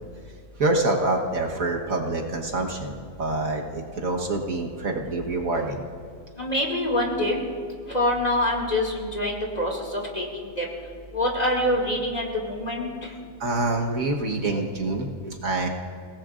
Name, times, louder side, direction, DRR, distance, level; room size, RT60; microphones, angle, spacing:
voice 1, 0.6-5.8 13.4-15.7, right 2 dB, 60° right, 0 dB, 1.7 m, -26 dB
voice 2, 6.4-7.4 7.9-10.7 11.1-13.1, left 1 dB, 25° left, -2 dB, 2.3 m, -25 dB
29.0 x 18.0 x 2.5 m, 2.2 s
omnidirectional pair, 1.6 m